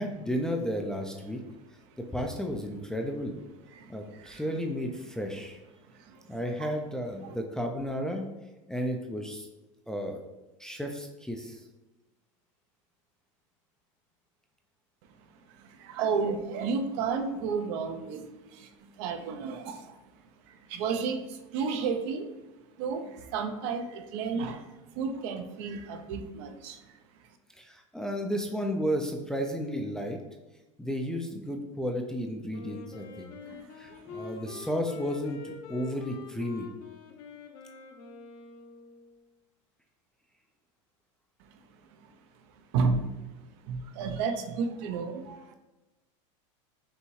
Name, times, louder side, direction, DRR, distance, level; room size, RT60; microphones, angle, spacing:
voice 1, 0.0-1.4 2.1-3.4 3.9-5.6 6.3-8.3 8.7-9.5 9.9-10.2 10.6-11.6 27.6-30.2 30.8-33.3 33.8-36.7, equal, 5° left, 2 dB, 0.3 m, -33 dB
voice 2, 3.7-4.5 5.9-6.3 6.6-6.7 7.2-7.4 15.2-20.0 20.5-22.3 22.8-27.3 33.4-34.3 41.5-42.1 42.7-43.2 43.6-45.5, right 5 dB, 60° right, 7 dB, 0.5 m, -33 dB
Wind instrument woodwind instrument, 32.5-39.2, left 5 dB, 60° left, 0.7 m, -45 dB
5.5 x 2.6 x 3.1 m, 1.1 s
supercardioid pair, 125°, 16 cm